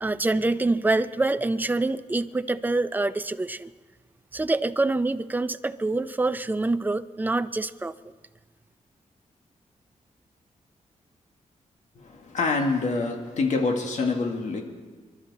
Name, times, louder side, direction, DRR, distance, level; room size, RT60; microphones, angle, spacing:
voice 1, 0.0-3.7 4.3-8.0, right 2 dB, 15° right, 12 dB, 0.4 m, -26 dB
voice 2, 12.0-14.6, left 3 dB, 65° left, 3 dB, 1.7 m, -26 dB
27.0 x 12.0 x 4.0 m, 1.4 s
wide cardioid pair, 155°, 13 cm